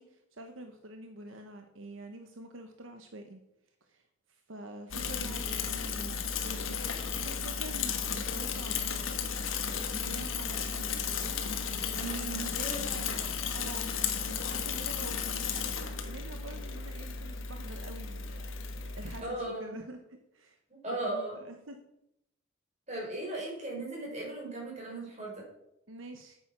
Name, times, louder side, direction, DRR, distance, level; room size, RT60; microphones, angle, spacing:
voice 1, 0.0-3.4 3.8-13.2 13.5-13.9 14.2-20.6 21.0-21.8 25.9-26.4, right 1 dB, 75° right, 5 dB, 1.1 m, -47 dB
Bicycle / Mechanisms, 4.9-19.2, left 6 dB, 85° left, 1.5 m, -34 dB
voice 2, 11.9-12.8 19.2-19.8 20.8-21.4 22.9-25.5, right 2 dB, 35° right, -2 dB, 5.2 m, -37 dB
9.2 x 9.1 x 6.0 m, 0.81 s
head